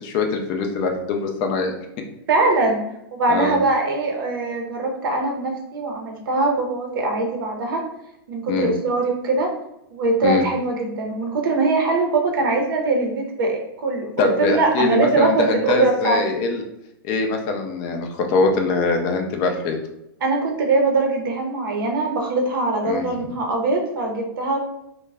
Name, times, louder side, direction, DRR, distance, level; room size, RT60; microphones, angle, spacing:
voice 1, 0.0-1.7 3.3-3.6 8.5-8.7 10.2-10.4 14.2-16.6 17.0-19.8 22.9-23.1, left 4 dB, 30° left, 4 dB, 0.4 m, -22 dB
voice 2, 2.3-2.8 3.1-7.8 8.3-9.5 9.9-16.2 20.2-24.6, right 3 dB, 65° right, 2 dB, 0.6 m, -22 dB
2.2 x 2.0 x 3.3 m, 0.84 s
hypercardioid pair, 155°, 12 cm